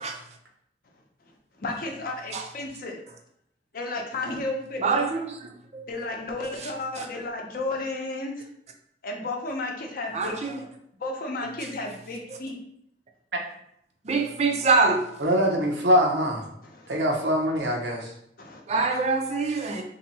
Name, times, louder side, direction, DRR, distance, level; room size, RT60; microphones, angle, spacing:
voice 1, 1.6-3.0 3.7-5.1 5.9-8.5 9.0-10.4 11.0-12.6 16.6-16.9 18.4-18.9, left 2 dB, 55° left, 1 dB, 0.7 m, -33 dB
voice 2, 4.8-5.3 5.7-5.8 10.1-10.6 14.0-15.0 18.7-19.8, right 4 dB, 40° right, 3 dB, 0.5 m, -24 dB
voice 3, 15.2-16.5 16.9-18.1, equal, 75° right, 1 dB, 0.8 m, -23 dB
2.8 x 2.6 x 4.1 m, 0.73 s
head